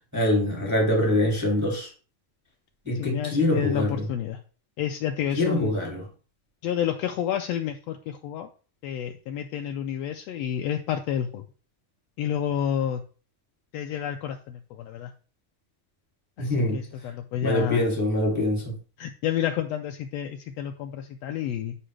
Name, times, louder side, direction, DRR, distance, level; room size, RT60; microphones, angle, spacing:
voice 1, 0.1-1.9 2.8-4.0 5.3-6.0 16.4-16.8 17.4-18.8, left 1 dB, 5° right, 1.8 m, -24 dB
voice 2, 2.9-4.4 4.8-5.7 6.6-8.5 8.8-11.5 12.2-13.0 13.7-15.1 16.4-17.8 19.0-21.8, left 9 dB, 90° left, 1.4 m, -30 dB
9.9 x 5.5 x 3.3 m
omnidirectional pair, 3.6 m